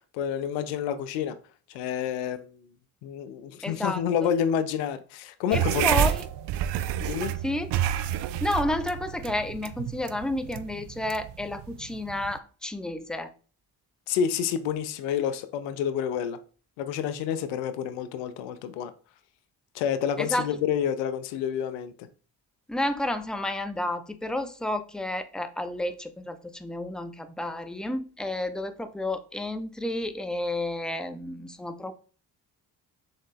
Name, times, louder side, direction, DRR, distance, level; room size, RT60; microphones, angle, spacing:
voice 1, 0.1-1.4 1.7-2.7 3.0-5.9 7.0-7.3 14.1-16.4 16.8-18.9 19.7-22.1, left 8 dB, 80° left, 0.5 m, -29 dB
voice 2, 3.6-4.0 5.5-6.2 7.4-7.7 8.4-13.3 20.2-20.5 22.7-31.9, left 1 dB, ahead, 0.5 m, -31 dB
sound 1, 5.5-12.4, right 11 dB, 65° right, 0.5 m, -29 dB
4.1 x 3.7 x 3.4 m
hypercardioid pair, 45°, 44 cm